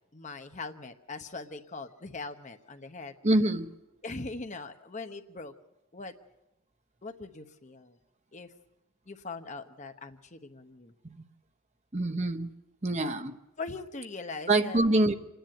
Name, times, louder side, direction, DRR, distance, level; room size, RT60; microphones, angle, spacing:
voice 1, 0.1-3.1 4.0-5.5 5.9-6.1 7.0-8.0 8.3-8.5 9.1-10.9 13.6-14.8, left 3 dB, 35° left, 7 dB, 1.0 m, -41 dB
voice 2, 3.2-3.7 11.0-11.2 11.9-12.5 12.8-13.4 14.5-15.1, right 2 dB, 30° right, 8 dB, 0.9 m, -25 dB
27.5 x 10.5 x 9.1 m, 0.97 s
head